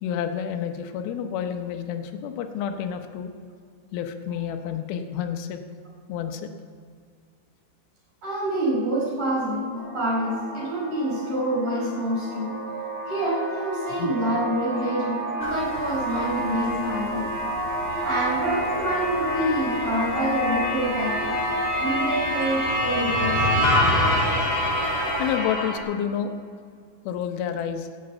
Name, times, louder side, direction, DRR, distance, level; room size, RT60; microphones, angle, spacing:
voice 1, 0.0-3.3 3.9-5.6 6.1-6.5 14.0-14.1 25.2-26.4 27.0-27.9, left 8 dB, 75° left, 6 dB, 2.7 m, -29 dB
voice 2, 8.2-12.5 13.1-17.3 18.0-23.5, right 1 dB, 50° right, -6 dB, 6.4 m, -27 dB
sci fi transporter effect, 9.8-25.8, equal, 20° left, 1.1 m, -27 dB
sound 1, 15.4-25.4, right 1 dB, 35° right, 0.6 m, -42 dB
15.5 x 8.4 x 7.7 m, 2.1 s
omnidirectional pair, 4.6 m